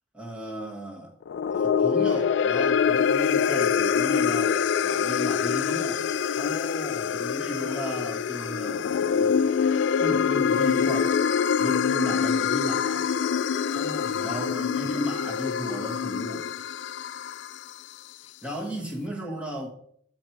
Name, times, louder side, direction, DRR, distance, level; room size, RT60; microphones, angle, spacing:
voice 1, 0.1-1.1 1.5-6.0 7.2-9.5 10.0-11.2 11.6-13.1 14.2-16.5 18.4-19.7, equal, 5° right, 1.4 m, -35 dB
sound 1, 1.2-17.7, left 7 dB, 70° left, 0.3 m, -25 dB
voice 2, 6.4-7.2 13.7-14.4 14.8-15.0 18.2-18.6, left 2 dB, 30° left, 0.6 m, -40 dB
8.5 x 4.5 x 4.5 m
head